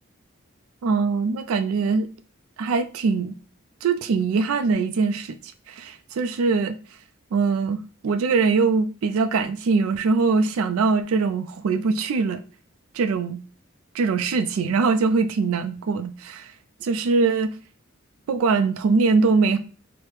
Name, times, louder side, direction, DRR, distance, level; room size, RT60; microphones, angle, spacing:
voice 1, 0.8-2.1 2.6-3.3 3.8-6.8 7.3-7.8 8.0-12.4 12.9-13.4 13.9-16.5 16.8-17.5 18.3-19.6, right 4 dB, 90° right, 0.4 m, -22 dB
4.7 x 2.1 x 3.0 m
head